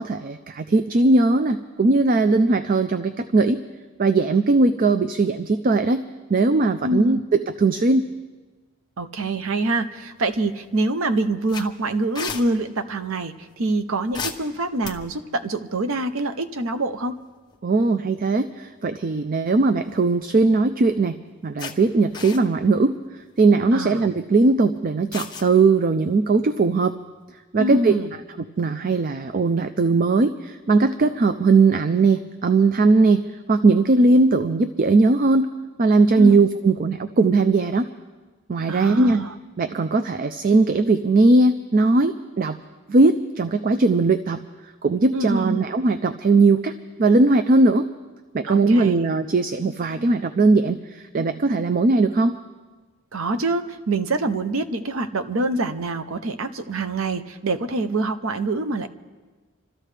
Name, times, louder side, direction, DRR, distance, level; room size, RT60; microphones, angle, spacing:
voice 1, 0.0-3.6 4.0-6.0 6.3-8.1 17.6-21.1 21.4-22.9 23.4-26.9 27.5-27.9 28.6-35.5 35.8-37.9 38.5-39.2 39.6-42.6 42.9-44.4 44.8-46.7 47.0-47.9 48.3-52.4, right 3 dB, 40° right, 9 dB, 0.4 m, -19 dB
voice 2, 6.8-7.2 9.0-17.2 23.7-24.0 27.6-28.1 36.1-36.4 38.7-39.3 45.1-45.7 48.5-49.1 53.1-58.9, right 2 dB, 70° right, 9 dB, 0.7 m, -25 dB
sound 1, 10.2-10.7 11.0-11.1 11.5-12.4 14.1-15.3 16.9-17.1 17.5-17.6 19.6-20.2 20.8-20.9 21.6-21.7 22.1-22.7 23.2-23.4 25.1-25.5, left 5 dB, 20° left, 0.9 m, -34 dB
27.0 x 13.5 x 3.3 m, 1.3 s
head